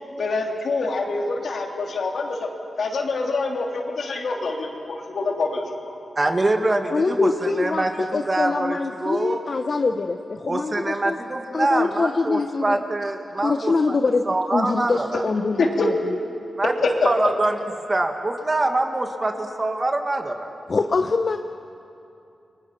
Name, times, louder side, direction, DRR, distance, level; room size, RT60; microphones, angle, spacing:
voice 1, 0.2-2.5 2.8-5.9 15.6-15.9 17.0-17.3, left 3 dB, 70° left, 1 dB, 3.0 m, -25 dB
voice 2, 6.2-9.4 10.5-14.0 14.3-15.2 16.6-17.6 17.9-20.5, right 2 dB, 30° right, 4 dB, 2.1 m, -24 dB
voice 3, 6.9-11.2 11.5-12.8 13.4-16.2 20.7-21.4, left 4 dB, 45° left, 7 dB, 0.8 m, -24 dB
30.0 x 23.0 x 5.9 m, 2.7 s
wide cardioid pair, 100°, 0 cm